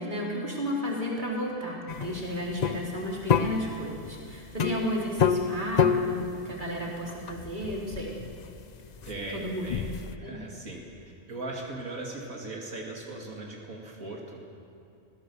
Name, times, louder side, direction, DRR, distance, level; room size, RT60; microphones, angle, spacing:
voice 1, 0.0-8.1 9.3-9.7 10.2-10.4, equal, 35° right, -3 dB, 3.9 m, -33 dB
sound 1, 1.9-10.1, left 6 dB, 45° left, 0.6 m, -29 dB
voice 2, 9.0-9.9 10.2-10.8 11.3-14.4, right 2 dB, 85° right, -1 dB, 2.8 m, -38 dB
23.5 x 16.5 x 7.0 m, 2.7 s
omnidirectional pair, 1.4 m